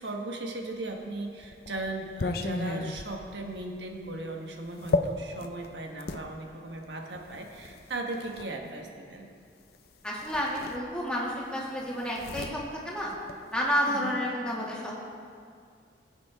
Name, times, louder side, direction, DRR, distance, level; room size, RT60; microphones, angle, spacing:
voice 1, 0.0-9.3 13.9-14.2, right 2 dB, 75° right, 2 dB, 1.3 m, -37 dB
sound 1, 0.9-6.3 7.2-8.5 9.7-9.9 10.2-11.3 11.6-13.8, left 3 dB, 60° left, 0.6 m, -35 dB
voice 2, 10.0-13.1 13.5-14.9, equal, 5° left, -5 dB, 2.1 m, -30 dB
20.0 x 8.6 x 3.6 m, 2.2 s
head